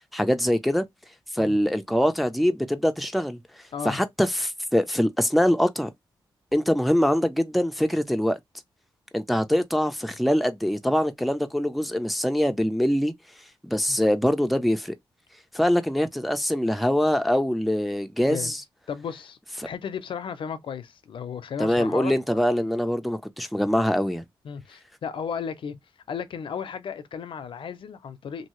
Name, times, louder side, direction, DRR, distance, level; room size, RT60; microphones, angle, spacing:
voice 1, 0.1-0.8 1.3-3.4 3.8-5.9 6.5-8.4 9.1-13.1 13.6-15.0 15.5-18.6 21.6-24.2, equal, ahead, 0.4 m, -23 dB
voice 2, 18.9-22.1 24.4-25.8 26.1-28.5, left 7 dB, 75° left, 0.6 m, -34 dB
2.7 x 2.7 x 3.0 m
wide cardioid pair, 110°, 9 cm